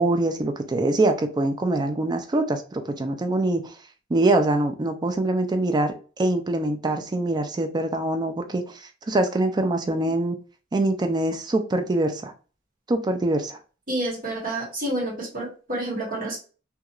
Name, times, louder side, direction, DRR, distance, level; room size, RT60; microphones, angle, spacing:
voice 1, 0.0-3.8 4.1-10.4 10.7-12.3 12.9-13.6, right 2 dB, 20° right, 0.3 m, -24 dB
voice 2, 13.9-16.4, right 1 dB, 45° right, 1.2 m, -29 dB
2.9 x 2.3 x 2.3 m
head